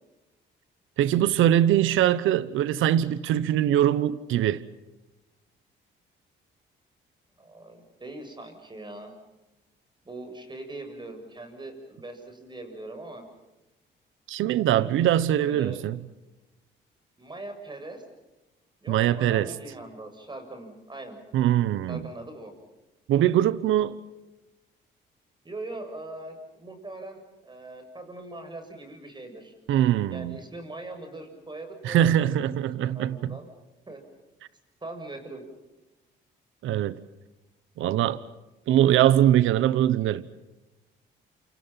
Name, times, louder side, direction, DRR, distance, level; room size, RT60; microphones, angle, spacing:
voice 1, 1.0-4.6 14.3-16.0 18.9-19.5 21.3-22.1 23.1-24.0 29.7-30.4 31.8-33.4 36.6-37.0 37.8-38.2 38.7-40.2, right 11 dB, 85° right, 1.1 m, -22 dB
voice 2, 7.4-9.1 10.0-13.2 15.4-15.8 17.2-18.0 18.8-21.2 21.9-22.5 25.4-29.5 30.1-33.5 33.9-34.0 34.8-35.4, right 2 dB, 25° right, 7.5 m, -41 dB
28.5 x 27.0 x 5.9 m
cardioid pair, 90°, 20 cm